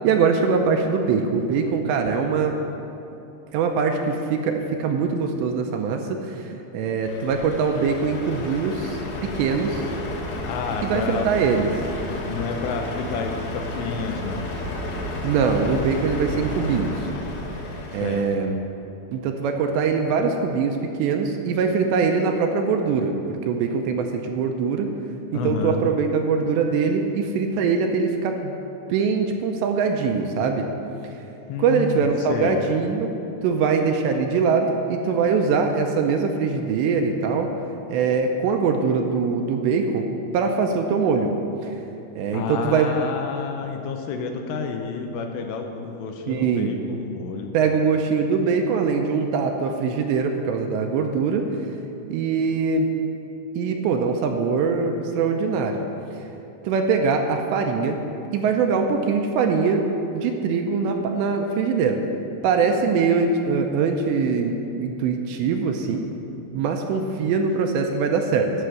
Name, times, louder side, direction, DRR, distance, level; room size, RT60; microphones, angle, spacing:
voice 1, 0.0-2.6 3.5-9.9 10.8-11.7 15.2-16.9 17.9-18.6 19.1-23.2 23.5-24.9 25.3-28.6 28.9-30.6 31.6-33.1 33.4-37.5 37.9-40.1 40.3-41.3 41.6-41.7 42.2-42.9 46.3-46.8 47.5-51.5 52.1-52.9 53.5-55.8 56.7-58.0 58.3-62.0 62.4-66.1 66.5-68.5, right 5 dB, 80° right, 4 dB, 2.7 m, -22 dB
Truck, 7.0-18.2, left 2 dB, 65° left, 3.1 m, -32 dB
voice 2, 10.5-11.3 12.3-14.5 18.0-18.4 25.3-25.8 31.5-32.6 42.3-47.6, left 5 dB, 80° left, 4 dB, 2.7 m, -30 dB
11.5 x 6.7 x 7.6 m, 2.9 s
omnidirectional pair, 5.4 m